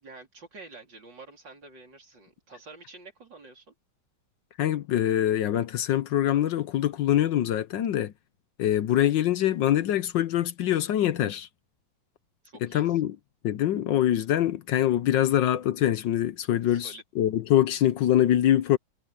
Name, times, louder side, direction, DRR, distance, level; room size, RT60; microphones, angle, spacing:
voice 1, 0.0-3.7 12.4-13.0 16.7-17.0, right 3 dB, 60° right, 4.9 m, -48 dB
voice 2, 4.6-8.1 8.6-11.5 12.6-13.2 13.4-18.8, left 12 dB, 70° left, 1.4 m, -24 dB
omnidirectional pair, 2.2 m